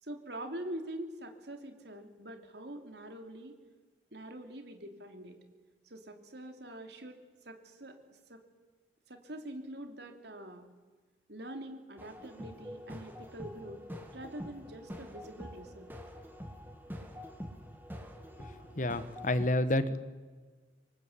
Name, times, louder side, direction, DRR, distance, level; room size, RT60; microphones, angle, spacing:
voice 1, 0.0-3.6 4.1-5.4 5.8-8.4 9.1-10.7 11.3-13.8 14.1-15.9, right 1 dB, 60° right, 5 dB, 3.1 m, -45 dB
sound 1, 12.0-19.4, equal, 10° right, 2.8 m, -46 dB
voice 2, 18.7-20.0, left 1 dB, 40° left, 12 dB, 1.4 m, -29 dB
27.0 x 25.0 x 8.5 m, 1.4 s
head